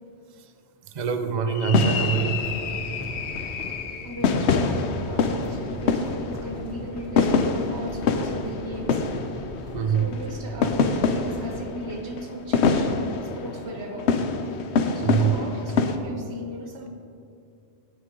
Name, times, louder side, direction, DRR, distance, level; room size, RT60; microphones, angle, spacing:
voice 1, 0.9-2.4 9.7-10.1 15.0-15.4, right 7 dB, 45° right, 8 dB, 0.7 m, -24 dB
sound 1, 1.5-16.0, left 4 dB, 80° left, 1.0 m, -26 dB
sound 2, 2.1-11.3, equal, 20° right, 2.5 m, -43 dB
sound 3, 2.5-11.8, equal, ahead, 1.0 m, -42 dB
voice 2, 4.0-9.0 9.9-12.9 13.2-14.2 14.9-16.9, equal, 75° right, 3 dB, 1.4 m, -37 dB
17.5 x 6.4 x 3.7 m, 2.4 s
omnidirectional pair, 1.1 m